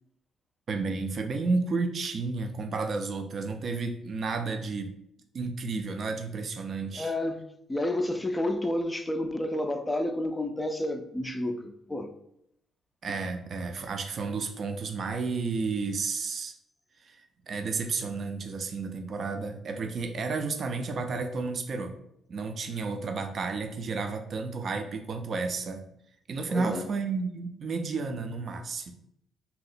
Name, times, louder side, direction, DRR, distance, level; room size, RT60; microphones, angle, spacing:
voice 1, 0.7-4.9 5.3-7.1 13.0-16.6 17.0-21.9 22.3-25.9 26.3-28.9, right 4 dB, 50° right, 0.4 m, -32 dB
voice 2, 6.9-12.1 26.5-26.9, left 1 dB, 15° left, 0.3 m, -30 dB
2.8 x 2.0 x 3.9 m
cardioid pair, 90°, 0 cm